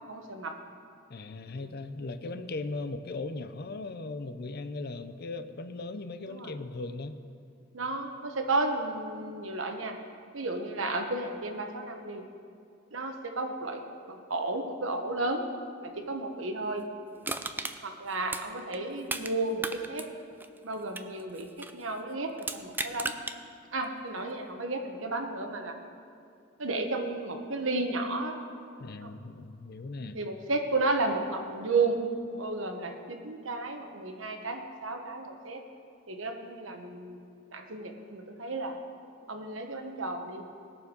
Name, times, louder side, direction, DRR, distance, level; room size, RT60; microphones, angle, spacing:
voice 1, 0.1-0.6 1.6-1.7 6.3-6.5 7.7-10.0 10.3-12.2 12.9-13.8 14.1-15.4 15.8-16.8 17.8-20.0 20.6-21.5 21.7-23.1 23.7-25.8 26.6-28.4 29.0-29.1 30.1-32.0 32.3-35.6 36.1-37.2 37.5-38.8 39.3-40.4, right 2 dB, 90° right, 4 dB, 1.3 m, -33 dB
voice 2, 1.1-7.2 28.8-30.2, left 3 dB, 55° left, 11 dB, 0.6 m, -38 dB
Crushing, 17.2-19.3 19.6-21.8 22.4-23.4 23.8-23.9, right 3 dB, 10° right, 0.4 m, -36 dB
19.5 x 7.0 x 5.3 m, 2.5 s
head